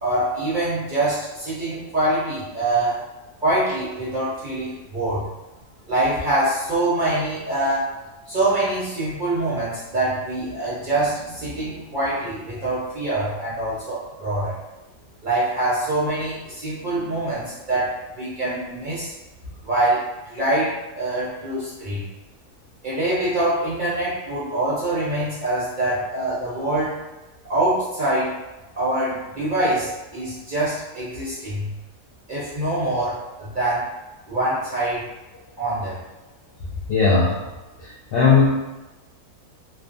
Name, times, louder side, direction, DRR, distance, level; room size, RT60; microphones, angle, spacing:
voice 1, 0.0-3.0 3.4-5.3 5.9-7.9 8.3-14.6 15.2-19.1 19.6-22.0 22.8-27.0 27.5-28.3 28.8-31.7 32.3-33.8 34.3-35.1 35.6-36.0, right 1 dB, 50° right, -9 dB, 0.6 m, -24 dB
voice 2, 36.9-37.3 38.1-38.6, left 4 dB, 70° left, -7 dB, 0.5 m, -16 dB
2.5 x 2.4 x 2.4 m, 1.1 s
omnidirectional pair, 1.5 m